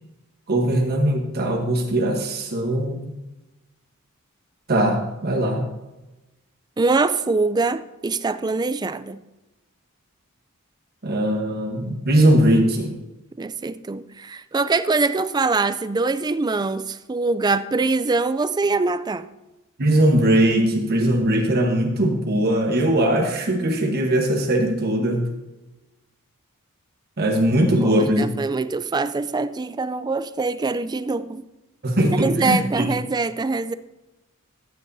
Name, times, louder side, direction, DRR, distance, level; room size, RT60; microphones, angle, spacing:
voice 1, 0.5-3.1 4.7-5.7 11.0-12.9 19.8-25.3 27.2-28.3 31.8-32.9, right 1 dB, 45° right, 2 dB, 1.2 m, -20 dB
voice 2, 6.8-9.2 13.4-19.3 27.8-31.4 32.1-33.7, right 3 dB, 20° right, 13 dB, 0.4 m, -23 dB
14.0 x 9.3 x 2.7 m, 1.0 s
head